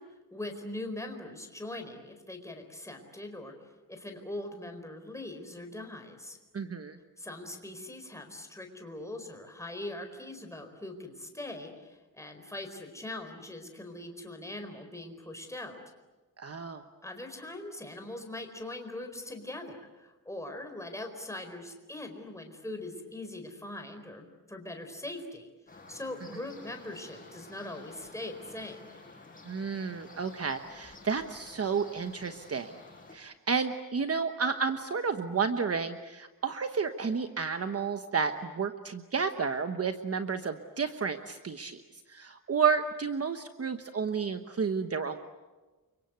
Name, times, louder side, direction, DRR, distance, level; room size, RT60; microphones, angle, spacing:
voice 1, 0.0-6.4 7.2-15.8 17.0-25.5 25.9-28.8, left 1 dB, 10° left, 4 dB, 4.5 m, -41 dB
voice 2, 6.5-7.0 16.4-16.8 29.4-32.7 33.1-41.8 42.1-45.2, right 5 dB, 45° right, 8 dB, 1.1 m, -31 dB
sound 1, 25.7-33.2, left 3 dB, 25° left, 6.7 m, -51 dB
29.5 x 24.5 x 8.2 m, 1.2 s
wide cardioid pair, 130°, 34 cm